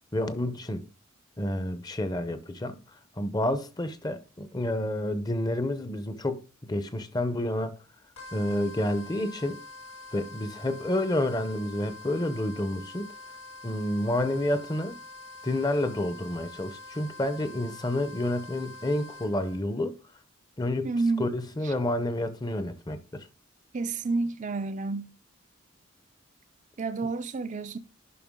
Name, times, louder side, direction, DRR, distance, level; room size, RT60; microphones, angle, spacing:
voice 1, 0.1-0.9 1.4-2.8 3.2-7.8 8.3-9.6 10.1-13.1 13.6-15.0 15.4-20.0 20.6-23.3, left 1 dB, 20° left, 0.7 m, -29 dB
sound 1, 8.2-19.6, left 3 dB, 90° left, 3.6 m, -46 dB
voice 2, 20.8-21.3 23.7-25.1 26.8-27.8, right 3 dB, 35° right, 0.5 m, -29 dB
11.0 x 5.6 x 3.7 m
head